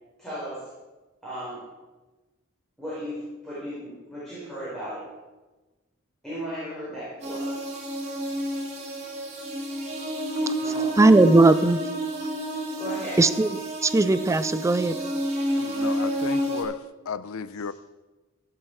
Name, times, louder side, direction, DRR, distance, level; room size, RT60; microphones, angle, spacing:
voice 1, 0.2-0.7 1.2-1.7 2.8-5.1 6.2-7.5 10.6-11.0 12.8-13.3, equal, ahead, -11 dB, 5.0 m, -36 dB
sound 1, 7.2-16.6, right 1 dB, 35° right, 2.9 m, -29 dB
voice 2, 11.0-11.8 13.2-13.5 13.8-14.9, right 2 dB, 15° right, 13 dB, 0.3 m, -18 dB
voice 3, 15.6-16.8 17.1-17.7, left 5 dB, 85° left, 15 dB, 0.6 m, -34 dB
16.0 x 7.8 x 4.8 m, 1.2 s
head